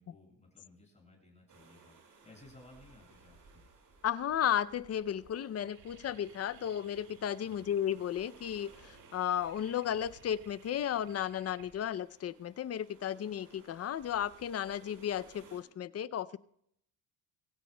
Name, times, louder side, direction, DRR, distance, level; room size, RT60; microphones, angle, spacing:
voice 1, 0.0-2.0 2.2-3.6 7.5-7.7, left 2 dB, 15° left, -1 dB, 6.2 m, -58 dB
sound 1, 1.5-15.6, right 3 dB, 50° right, 4.8 m, -60 dB
voice 2, 4.0-16.4, left 10 dB, 35° left, 17 dB, 0.5 m, -34 dB
sound 2, 4.2-4.3 4.6-4.9 5.2-14.1, right 7 dB, 85° right, 2.2 m, -62 dB
23.5 x 16.0 x 2.2 m, 0.72 s
cardioid pair, 120°, 43 cm